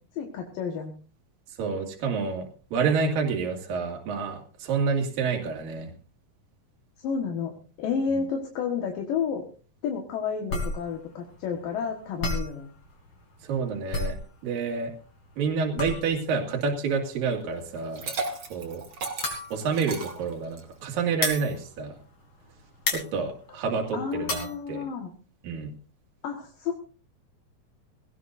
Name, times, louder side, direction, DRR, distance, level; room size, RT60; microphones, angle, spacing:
voice 1, 0.1-0.9 7.0-9.5 9.8-12.7 23.9-25.1 26.2-26.8, left 6 dB, 75° left, 2 dB, 3.2 m, -31 dB
voice 2, 1.5-5.9 8.1-8.2 13.4-14.2 14.4-14.9 15.4-18.1 18.5-18.8 19.5-22.0 22.9-24.8 25.4-25.7, right 5 dB, 75° right, 2 dB, 4.0 m, -28 dB
sound 1, 10.5-22.5 22.8-24.5, left 2 dB, 35° left, 3.9 m, -33 dB
Liquid, 17.7-20.8, right 3 dB, 35° right, 2.8 m, -35 dB
19.5 x 17.5 x 2.6 m, 0.36 s
omnidirectional pair, 4.1 m